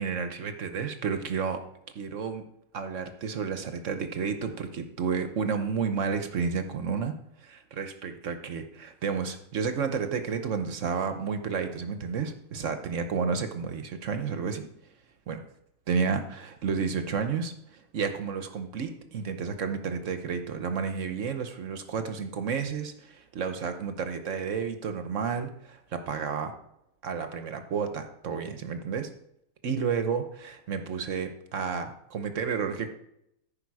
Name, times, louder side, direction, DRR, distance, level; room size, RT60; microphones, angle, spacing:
voice 1, 0.0-1.6 1.9-2.4 2.7-7.1 7.4-14.7 15.3-15.4 15.9-26.5 27.0-29.1 29.6-32.9, right 6 dB, 60° right, 8 dB, 1.2 m, -31 dB
14.0 x 5.5 x 4.8 m, 0.80 s
omnidirectional pair, 1.6 m